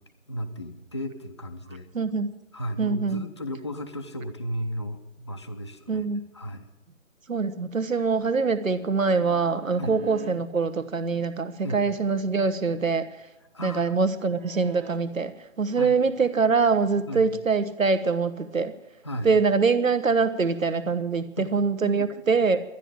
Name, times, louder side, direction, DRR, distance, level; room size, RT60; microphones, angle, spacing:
voice 1, 0.3-1.9 2.5-6.1 6.3-6.7 9.8-9.9 11.6-11.8 13.5-13.9 15.7-16.0 17.1-17.3 19.0-19.3 21.4-21.5 21.8-22.1, equal, 20° left, 5 dB, 0.6 m, -34 dB
voice 2, 1.9-2.3 2.8-3.2 5.9-6.2 7.3-13.1 13.6-18.7 19.2-22.6, right 4 dB, 75° right, 11 dB, 1.4 m, -24 dB
sound 1, 8.6-10.3 13.0-15.0 18.4-18.7, right 6 dB, 50° right, 1.8 m, -48 dB
12.5 x 10.5 x 8.8 m, 0.92 s
figure-of-eight pair, 155°, 40 cm